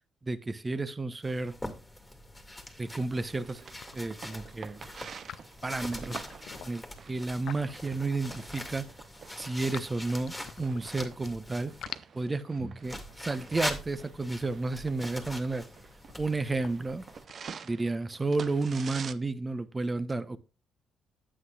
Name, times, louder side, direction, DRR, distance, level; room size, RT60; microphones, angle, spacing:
voice 1, 0.2-1.6 2.8-3.6 3.9-4.8 5.6-6.2 6.6-8.8 9.4-11.7 12.1-15.7 16.2-17.0 17.6-20.4, right 3 dB, 25° right, 0.9 m, -32 dB
sound 1, 1.2-11.8 12.8-17.2, left 1 dB, 10° left, 2.1 m, -43 dB
sound 2, 3.1-19.1, right 6 dB, 50° right, 0.6 m, -48 dB
sound 3, 3.3-3.6 3.8-4.5 5.1-8.8 9.2-11.3 11.6-17.7, left 10 dB, 70° left, 0.4 m, -47 dB
9.7 x 8.0 x 2.4 m
supercardioid pair, 65°, 0 cm